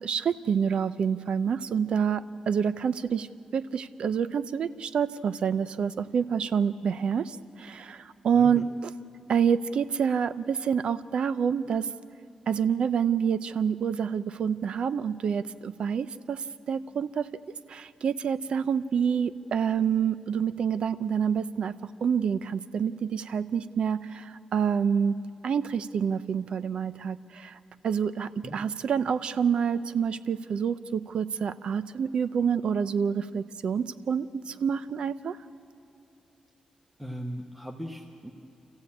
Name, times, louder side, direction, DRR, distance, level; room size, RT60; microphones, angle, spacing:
voice 1, 0.0-3.3 3.5-8.6 9.3-11.9 12.5-17.3 17.7-27.6 27.8-35.4, right 7 dB, 55° right, 14 dB, 0.6 m, -27 dB
voice 2, 8.3-8.6 28.4-28.6 37.0-38.3, equal, 5° right, 1 dB, 0.9 m, -38 dB
28.5 x 14.5 x 8.5 m, 2.8 s
wide cardioid pair, 175°, 2 cm